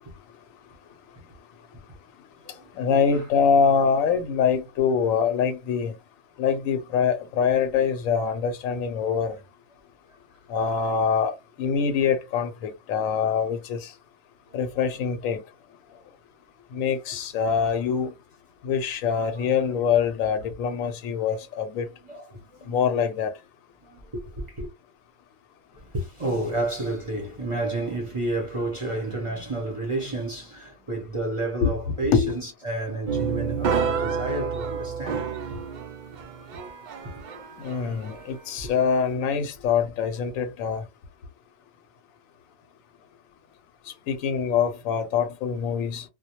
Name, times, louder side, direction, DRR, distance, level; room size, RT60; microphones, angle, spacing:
voice 1, 2.7-5.9 6.4-9.4 10.5-13.9 14.5-15.4 16.7-18.1 18.6-21.9 22.7-23.3 31.6-31.7 32.1-32.3 37.6-40.8 44.1-46.0, left 6 dB, 90° left, 1.0 m, -24 dB
voice 2, 22.0-22.8 23.8-24.7 25.7-35.7, right 2 dB, 30° right, 0.6 m, -31 dB
sound 1, 33.1-38.4, right 6 dB, 85° right, 0.4 m, -30 dB
2.2 x 2.1 x 2.8 m
omnidirectional pair, 1.3 m